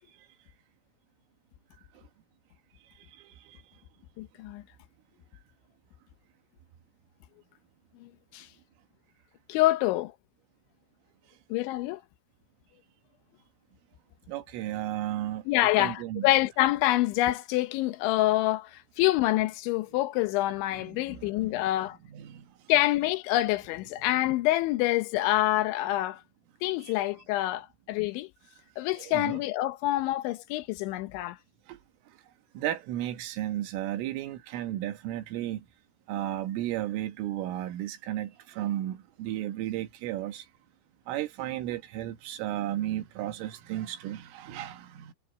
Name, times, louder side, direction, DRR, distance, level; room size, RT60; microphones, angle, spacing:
voice 1, 3.2-3.6 14.3-15.4 15.8-16.3 20.9-21.2 21.5-21.6 22.1-22.5 26.8-26.9 29.1-29.4 31.7-31.8 32.6-35.7 36.1-40.5 41.1-45.1, right 13 dB, 80° right, 4.1 m, -34 dB
voice 2, 4.2-4.6 8.0-8.5 9.5-10.1 11.5-12.0 15.5-22.0 22.7-26.2 26.6-28.3 28.8-31.4, left 16 dB, 75° left, 3.1 m, -26 dB
omnidirectional pair, 5.7 m